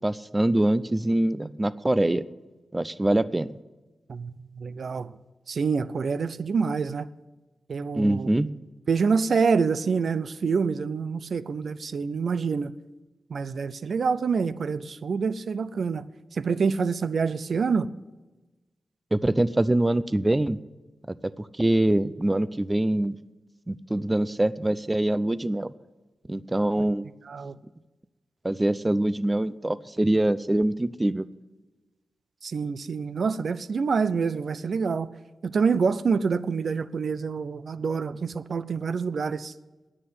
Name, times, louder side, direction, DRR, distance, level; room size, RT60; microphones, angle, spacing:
voice 1, 0.0-2.2 2.7-3.5 7.9-8.5 19.1-20.6 21.1-23.1 23.7-25.7 26.3-27.1 28.4-31.3, right 1 dB, 20° right, 0.5 m, -24 dB
voice 2, 4.1-5.1 5.5-7.1 7.7-8.3 8.9-12.7 13.3-16.1 16.3-17.9 26.7-26.8 27.3-27.6 32.4-35.1 35.4-39.5, right 5 dB, 70° right, 0.5 m, -26 dB
9.7 x 8.7 x 9.3 m
cardioid pair, 60°, 0 cm